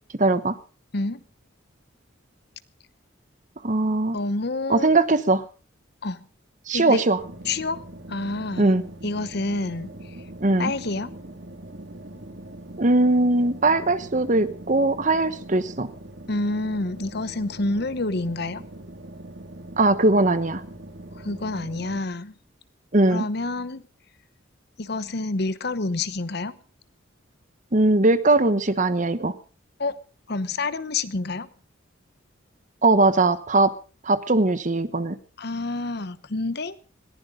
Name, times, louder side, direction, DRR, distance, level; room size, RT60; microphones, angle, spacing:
voice 1, 0.2-0.6 3.6-4.2 4.7-5.4 6.7-7.2 8.6-8.8 10.4-10.7 12.8-15.9 19.8-20.6 22.9-23.2 27.7-29.3 32.8-33.7 34.0-35.2, right 2 dB, 40° right, 13 dB, 1.1 m, -20 dB
voice 2, 4.1-4.9 6.0-6.2 6.7-7.0 7.4-7.8 8.1-8.7 9.0-9.9 10.6-11.1 16.3-18.6 21.1-22.3 23.1-23.8 24.8-26.5 29.8-29.9 30.3-31.5 35.4-36.8, left 2 dB, 55° left, 15 dB, 0.9 m, -28 dB
sound 1, 7.2-22.0, right 1 dB, 60° right, 2.3 m, -41 dB
20.5 x 15.5 x 3.8 m, 0.35 s
head